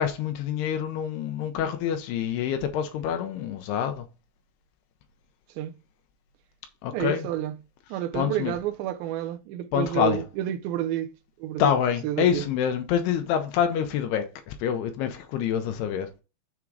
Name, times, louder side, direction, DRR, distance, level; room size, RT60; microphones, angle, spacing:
voice 1, 0.0-4.0 6.8-7.3 8.1-8.5 9.7-10.2 11.6-16.1, left 9 dB, 80° left, 2.8 m, -26 dB
voice 2, 6.9-7.6 7.9-11.1 11.4-11.7 12.0-12.5, right 12 dB, 85° right, 2.1 m, -30 dB
7.1 x 3.7 x 4.7 m
omnidirectional pair, 4.6 m